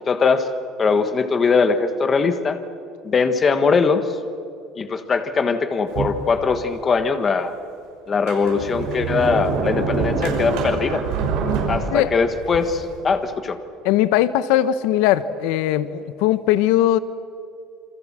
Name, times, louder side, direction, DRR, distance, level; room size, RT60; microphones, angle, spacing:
voice 1, 0.1-0.5 0.8-2.6 3.0-4.0 4.7-7.5 8.1-11.0 11.7-13.6, left 5 dB, 20° left, 8 dB, 1.5 m, -20 dB
Sliding door, 5.9-6.8 7.4-7.5 8.1-12.9, right 4 dB, 65° right, 6.2 m, -25 dB
voice 2, 13.8-17.0, left 13 dB, 85° left, 13 dB, 1.0 m, -19 dB
28.0 x 26.0 x 7.5 m, 2.4 s
cardioid pair, 180°, 0 cm